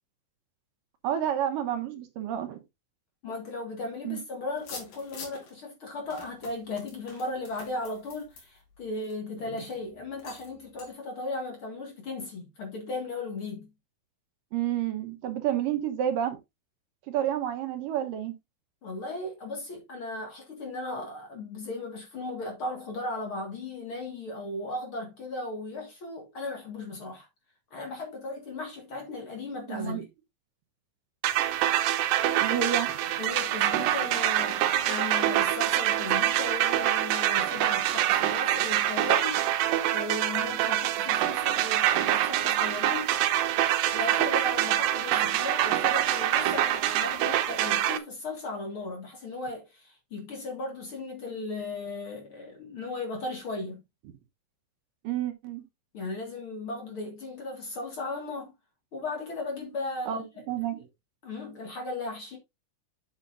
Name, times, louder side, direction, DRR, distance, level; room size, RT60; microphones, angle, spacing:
voice 1, 1.0-2.6 4.0-4.2 14.5-16.4 17.1-18.4 29.7-30.0 32.4-33.0 55.0-55.6 60.1-60.8, right 10 dB, 75° right, 2.6 m, -30 dB
voice 2, 3.2-13.7 18.8-27.3 27.7-30.1 33.2-43.1 43.9-53.8 55.9-58.5 58.9-60.3 61.2-62.4, left 2 dB, 45° left, 2.2 m, -36 dB
sound 1, 4.6-5.5 6.1-9.2 9.6-9.8 10.2-10.5 10.8-10.9, left 5 dB, 75° left, 4.5 m, -46 dB
sound 2, 31.2-48.0, right 12 dB, 90° right, 2.6 m, -25 dB
8.0 x 7.7 x 2.5 m
omnidirectional pair, 4.1 m